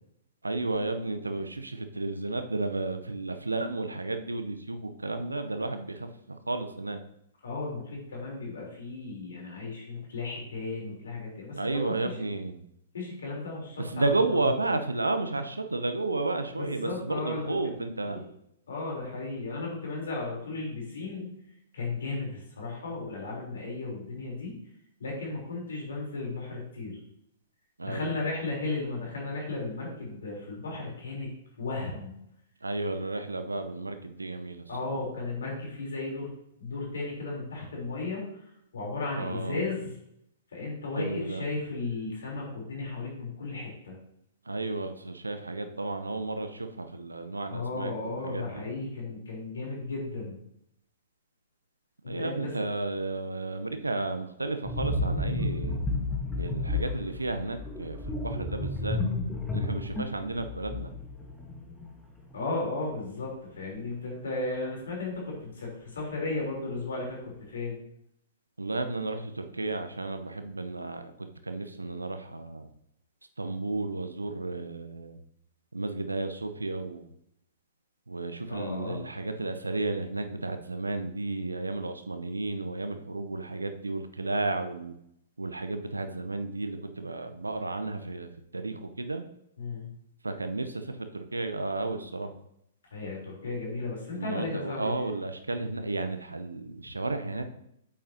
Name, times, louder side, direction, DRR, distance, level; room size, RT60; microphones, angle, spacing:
voice 1, 0.4-7.0 11.5-12.6 13.8-18.2 27.8-28.2 32.6-34.7 39.2-39.6 41.0-41.4 44.5-48.6 52.1-55.8 56.4-59.0 59.5-60.9 68.6-72.7 73.4-75.2 75.7-77.1 78.1-85.0 85.4-89.2 90.2-92.3 94.1-97.5, right 2 dB, 80° right, 8 dB, 0.8 m, -32 dB
voice 2, 7.4-12.2 12.9-14.1 16.6-18.2 18.7-21.3 21.7-24.6 25.0-27.0 27.8-31.3 31.6-32.2 34.7-36.3 36.6-39.9 40.5-44.0 47.5-50.4 52.0-52.5 62.3-67.8 78.5-79.0 89.6-89.9 92.9-94.9 96.8-96.9, left 3 dB, 65° left, -2 dB, 3.5 m, -35 dB
sound 1, 54.6-62.1 62.3-62.5, left 2 dB, 5° left, 1.2 m, -32 dB
8.7 x 7.5 x 2.8 m, 0.76 s
figure-of-eight pair, 110°, 0 cm